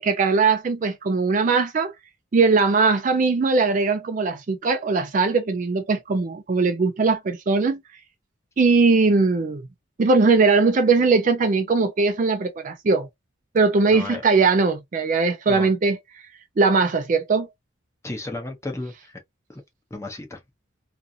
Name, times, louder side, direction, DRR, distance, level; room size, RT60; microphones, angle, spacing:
voice 1, 0.0-1.9 2.3-7.8 8.6-9.6 10.0-13.1 13.5-16.0 16.6-17.5, right 4 dB, 40° right, 0.4 m, -20 dB
voice 2, 13.8-14.2 15.5-15.7 18.0-19.2 19.5-19.6 19.9-20.4, left 2 dB, 15° left, 0.6 m, -33 dB
2.5 x 2.5 x 2.6 m
head